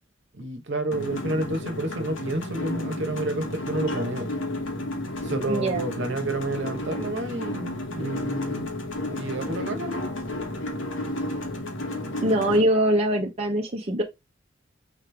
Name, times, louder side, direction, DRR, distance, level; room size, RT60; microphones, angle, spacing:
voice 1, 0.3-4.3 5.2-8.7 9.0-10.1, right 2 dB, 60° right, 1.1 m, -30 dB
sound 1, 0.9-12.6, left 1 dB, 65° left, 1.2 m, -32 dB
voice 2, 5.5-5.9 12.2-14.0, right 1 dB, 30° right, 0.7 m, -23 dB
4.9 x 3.1 x 3.3 m
head